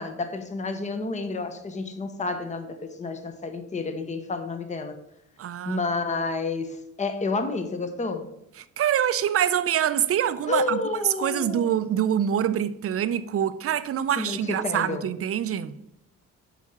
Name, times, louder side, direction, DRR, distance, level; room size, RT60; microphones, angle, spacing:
voice 1, 0.0-5.0 5.7-8.3 10.5-11.7 14.2-15.0, left 3 dB, 25° left, 0.9 m, -30 dB
voice 2, 5.4-5.8 8.6-10.8 11.0-15.8, right 9 dB, 50° right, 0.5 m, -25 dB
7.2 x 4.9 x 5.7 m
cardioid pair, 90°, 30 cm